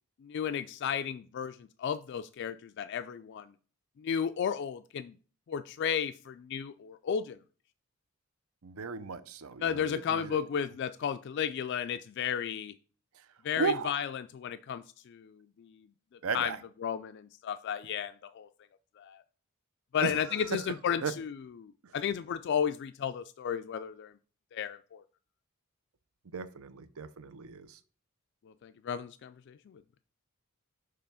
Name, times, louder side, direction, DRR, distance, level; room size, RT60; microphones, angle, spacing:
voice 1, 0.3-1.5 1.8-3.4 4.0-5.1 5.5-7.4 9.6-12.7 13.4-14.1 14.3-14.8 15.1-15.2 16.3-16.5 16.8-18.5 19.9-21.3 21.6-24.1 24.5-25.0 28.6-29.3, left 8 dB, 50° left, 10 dB, 0.3 m, -33 dB
voice 2, 8.6-10.4 13.1-13.3 13.5-13.9 16.2-16.6 20.0-21.1 21.8-22.0 26.2-27.8, right 4 dB, 70° right, 12 dB, 0.6 m, -36 dB
6.5 x 3.3 x 5.5 m, 0.39 s
head